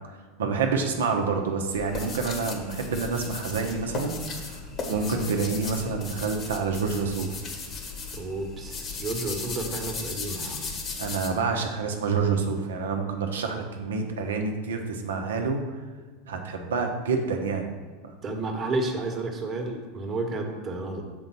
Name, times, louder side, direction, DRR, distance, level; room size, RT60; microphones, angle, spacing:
voice 1, 0.4-4.6 4.9-7.3 11.0-15.6 16.2-17.7 18.0-18.1, right 5 dB, 75° right, 3 dB, 0.9 m, -28 dB
sound 1, 1.7-11.3, left 4 dB, 35° left, 1.2 m, -36 dB
voice 2, 8.1-10.7 18.2-21.0, right 2 dB, 35° right, 2 dB, 1.3 m, -31 dB
7.0 x 3.9 x 5.9 m, 1.4 s
hypercardioid pair, 85°, 0 cm